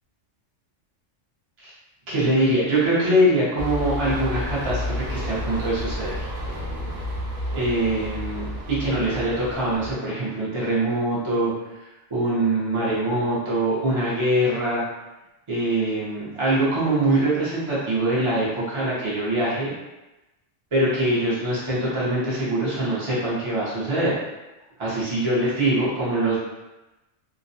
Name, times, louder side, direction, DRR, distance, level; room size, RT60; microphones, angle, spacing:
voice 1, 2.1-6.3 7.5-11.5 11.8-14.8 15.5-19.7 20.7-24.1 24.8-26.4, right 1 dB, 35° right, -8 dB, 0.5 m, -23 dB
sound 1, 3.6-9.9, left 1 dB, 65° right, 0.8 m, -30 dB
2.3 x 2.1 x 2.6 m, 1.0 s
omnidirectional pair, 1.3 m